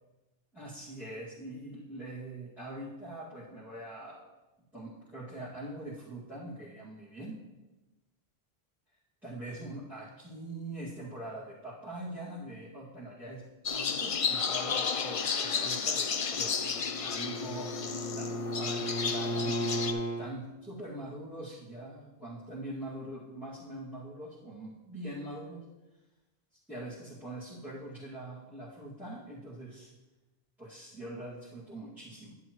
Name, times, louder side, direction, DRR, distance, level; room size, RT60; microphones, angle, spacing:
voice 1, 0.5-4.2 4.7-7.4 9.2-13.5 13.7-25.6 26.7-29.9 30.6-32.3, right 1 dB, ahead, -11 dB, 2.1 m, -43 dB
sound 1, 13.7-19.9, left 6 dB, 45° left, 0.5 m, -32 dB
Bowed string instrument, 16.5-20.3, equal, 80° left, 1.4 m, -35 dB
11.0 x 9.6 x 3.1 m, 1.1 s
omnidirectional pair, 1.0 m